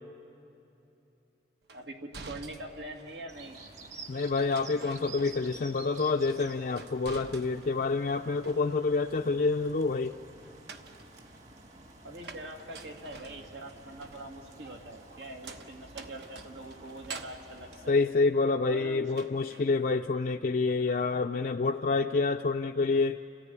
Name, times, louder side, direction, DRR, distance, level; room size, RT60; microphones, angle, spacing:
sound 1, 1.7-3.3 4.4-5.7 6.0-7.8 8.2-9.0 10.4-18.7 19.1-19.7, right 4 dB, 70° right, 1.1 m, -49 dB
voice 1, 1.7-3.6 12.0-18.0 18.7-19.3, right 1 dB, 90° right, 2 dB, 2.3 m, -44 dB
sound 2, 3.3-17.9, right 3 dB, 40° right, 1.7 m, -51 dB
voice 2, 4.1-10.1 17.9-23.2, left 3 dB, 50° left, 4 dB, 0.4 m, -28 dB
28.5 x 14.0 x 9.6 m, 3.0 s
head